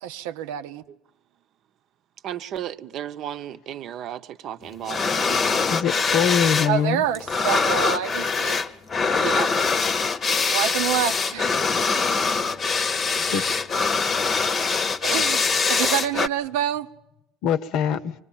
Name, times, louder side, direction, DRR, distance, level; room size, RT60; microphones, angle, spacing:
voice 1, 0.0-0.8 6.7-8.6 10.2-11.5 13.2-13.5 15.0-16.9, right 10 dB, 90° right, 0.8 m, -27 dB
voice 2, 2.2-5.7 6.1-6.4 9.1-9.5, right 10 dB, 55° right, 0.8 m, -34 dB
sound 1, 4.9-6.7 7.0-16.3, left 4 dB, 30° left, 0.9 m, -23 dB
voice 3, 5.7-7.0 13.3-13.4 17.4-18.1, left 8 dB, 65° left, 0.9 m, -23 dB
24.5 x 19.5 x 7.4 m
supercardioid pair, 110°, 0 cm